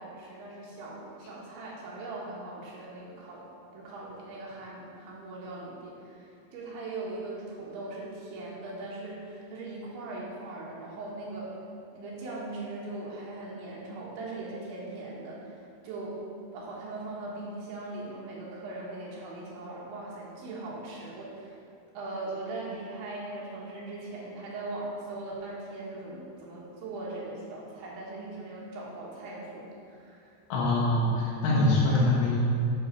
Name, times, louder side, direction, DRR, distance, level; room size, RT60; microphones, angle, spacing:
voice 1, 0.0-3.5 3.7-11.5 11.9-16.2 16.5-21.6 22.0-30.4 31.5-32.1, right 2 dB, 70° right, -5 dB, 3.7 m, -40 dB
voice 2, 30.5-32.4, left 2 dB, 70° left, -4 dB, 3.2 m, -24 dB
11.0 x 6.4 x 4.6 m, 2.4 s
omnidirectional pair, 5.7 m